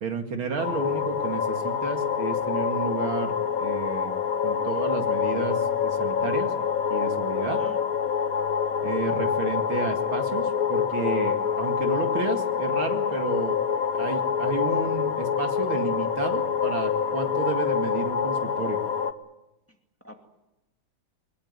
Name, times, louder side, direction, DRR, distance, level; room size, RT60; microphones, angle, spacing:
voice 1, 0.0-4.2 4.4-6.5 6.9-7.6 8.8-13.6 13.9-18.8, right 5 dB, 75° right, 5 dB, 3.0 m, -32 dB
sound 1, 0.6-19.1, left 7 dB, 50° left, 1.4 m, -26 dB
voice 2, 7.4-7.8 19.7-20.2, left 1 dB, 5° left, 3 dB, 2.3 m, -47 dB
22.0 x 20.5 x 9.8 m, 0.96 s
omnidirectional pair, 2.3 m